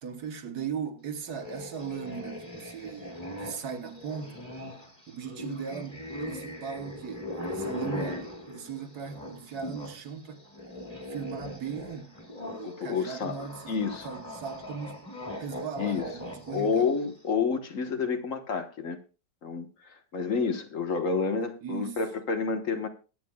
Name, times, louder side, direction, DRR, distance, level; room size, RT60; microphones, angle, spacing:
voice 1, 0.0-4.4 5.1-10.4 11.1-12.1 12.4-15.1 15.4-16.9 21.6-22.0, right 7 dB, 65° right, 1.7 m, -38 dB
sound 1, 1.2-10.0 10.3-17.1, left 1 dB, 15° left, 2.3 m, -40 dB
voice 2, 12.6-13.4 13.7-14.1 15.8-16.1 16.5-19.0 19.4-22.9, left 5 dB, 50° left, 1.6 m, -29 dB
22.0 x 8.7 x 2.3 m
omnidirectional pair, 1.9 m